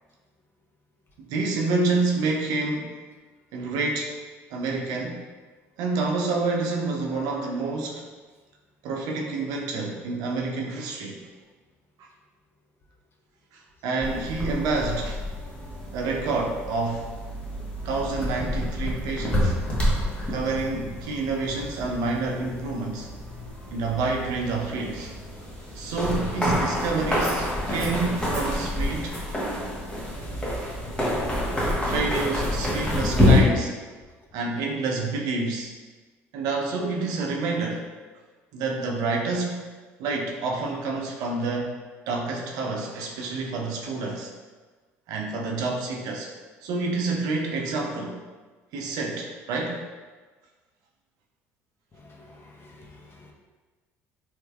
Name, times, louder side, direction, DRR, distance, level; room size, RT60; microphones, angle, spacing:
voice 1, 1.3-3.0 3.5-4.2 4.5-5.3 5.8-8.1 8.8-11.2 13.5-15.2 15.9-17.1 17.9-19.7 20.3-23.1 23.7-25.2 25.7-29.1 31.7-33.8 34.3-35.7 36.3-37.9 38.5-39.7 40.0-41.7 42.1-44.3 45.1-46.3 46.6-48.2 48.7-49.8, right 3 dB, 70° right, 0 dB, 0.5 m, -28 dB
sound 1, 14.0-33.4, left 1 dB, 15° left, 1.0 m, -28 dB
voice 2, 52.0-53.3, left 2 dB, 35° left, -1 dB, 0.7 m, -50 dB
3.2 x 3.1 x 2.2 m, 1.3 s
hypercardioid pair, 65°, 7 cm